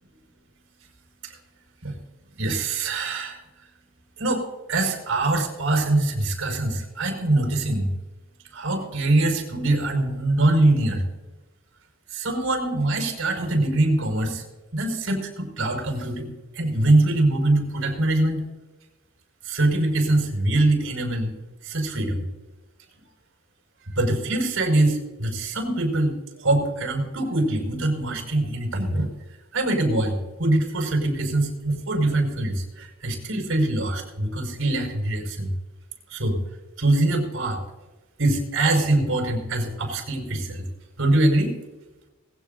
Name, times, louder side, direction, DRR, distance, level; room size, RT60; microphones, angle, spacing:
voice 1, 2.4-3.4 4.2-7.9 8.5-11.0 12.1-14.4 14.7-18.4 19.4-21.3 21.6-22.2 24.0-29.1 29.5-35.5 36.1-36.4 36.8-37.6 38.2-40.7 41.0-41.5, right 2 dB, 70° right, 3 dB, 5.4 m, -23 dB
21.0 x 16.5 x 2.7 m, 1.1 s
head